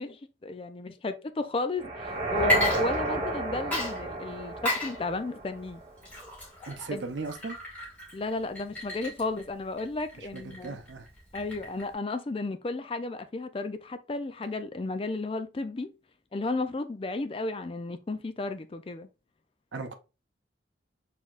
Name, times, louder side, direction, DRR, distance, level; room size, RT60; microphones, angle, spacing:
voice 1, 0.0-5.8 6.9-7.0 8.1-10.8 11.3-15.9 16.3-19.1, left 3 dB, 30° left, 0.4 m, -33 dB
sound 1, 1.8-5.9, right 2 dB, 30° right, 1.1 m, -32 dB
Water / Liquid, 2.4-3.4 3.7-11.9, left 1 dB, 10° left, 2.4 m, -34 dB
voice 2, 6.7-7.6 10.2-11.1 19.7-19.9, right 3 dB, 80° right, 0.6 m, -37 dB
4.4 x 3.4 x 2.4 m
head